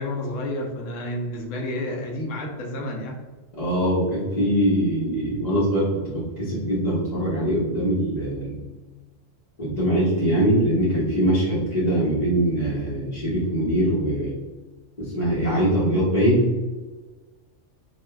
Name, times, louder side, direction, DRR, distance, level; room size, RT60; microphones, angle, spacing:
voice 1, 0.0-3.2, left 1 dB, 75° left, 1 dB, 1.0 m, -30 dB
voice 2, 3.6-8.6 9.6-14.4 15.0-16.5, right 1 dB, 35° left, -10 dB, 0.8 m, -22 dB
5.1 x 2.3 x 2.2 m, 1.3 s
omnidirectional pair, 1.3 m